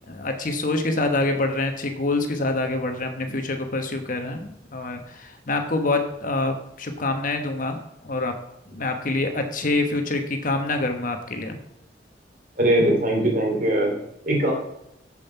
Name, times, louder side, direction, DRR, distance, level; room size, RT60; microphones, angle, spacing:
voice 1, 0.1-7.8 8.0-8.3 8.7-11.6, left 2 dB, 45° left, 5 dB, 1.2 m, -26 dB
voice 2, 12.6-14.0 14.2-14.5, right 1 dB, 50° right, 0 dB, 2.9 m, -20 dB
7.7 x 7.2 x 5.6 m, 0.84 s
head